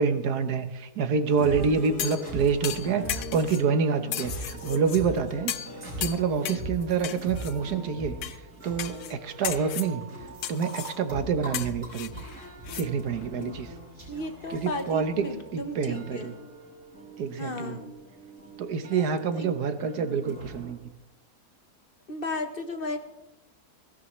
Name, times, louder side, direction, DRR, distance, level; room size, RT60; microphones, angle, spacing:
voice 1, 0.0-5.5 6.0-8.2 8.6-10.1 10.5-12.1 12.7-13.7 14.5-15.3 15.5-16.3 17.2-17.8 18.6-20.9, right 5 dB, 90° right, 9 dB, 1.6 m, -27 dB
sound 1, 1.3-20.7, right 1 dB, 50° right, 5.3 m, -40 dB
sound 2, 2.0-2.3 2.6-3.6 4.1-5.0 5.5-5.7 6.0-6.7 7.0-7.5 8.2-8.4 8.8-9.1 9.4-9.9 10.4-11.0 11.5-12.9 13.2-13.3, left 11 dB, 75° left, 1.2 m, -35 dB
voice 2, 14.1-16.3 17.4-17.9 18.9-19.0 19.3-19.5 22.1-23.0, left 2 dB, 40° left, 6 dB, 1.3 m, -34 dB
22.0 x 17.0 x 3.2 m, 0.95 s
omnidirectional pair, 1.6 m